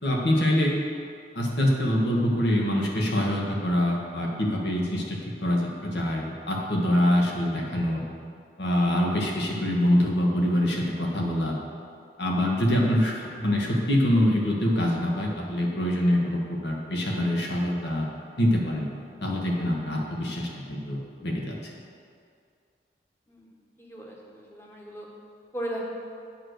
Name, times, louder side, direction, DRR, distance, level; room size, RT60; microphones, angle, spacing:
voice 1, 0.0-0.7 1.3-8.0 8.6-11.6 12.2-18.0 18.4-18.9 19.2-21.5, left 1 dB, 70° left, -1 dB, 1.5 m, -25 dB
voice 2, 23.8-25.1 25.5-25.8, right 1 dB, 15° left, -3 dB, 1.3 m, -36 dB
8.9 x 4.8 x 6.5 m, 2.3 s
head